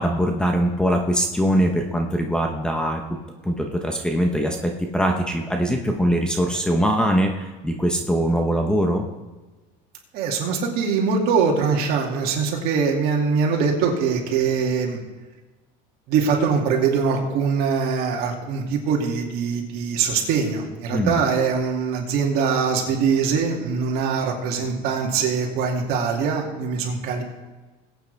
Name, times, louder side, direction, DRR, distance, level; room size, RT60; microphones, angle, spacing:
voice 1, 0.0-3.0 3.4-9.1 20.9-21.2, equal, 5° left, 3 dB, 1.0 m, -22 dB
voice 2, 10.1-15.0 16.1-27.2, right 5 dB, 60° right, 0 dB, 2.6 m, -22 dB
21.0 x 8.7 x 3.5 m, 1.2 s
cardioid pair, 135°, 18 cm